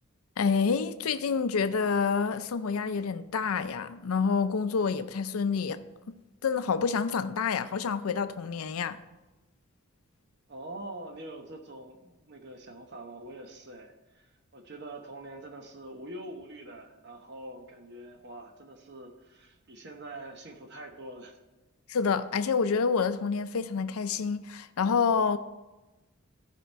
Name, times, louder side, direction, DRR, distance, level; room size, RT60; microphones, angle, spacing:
voice 1, 0.4-5.8 6.1-6.2 6.4-9.0 21.9-25.4, left 5 dB, 90° left, 0.5 m, -28 dB
voice 2, 10.5-21.4, right 1 dB, 50° right, 1.0 m, -44 dB
14.0 x 5.1 x 4.5 m
head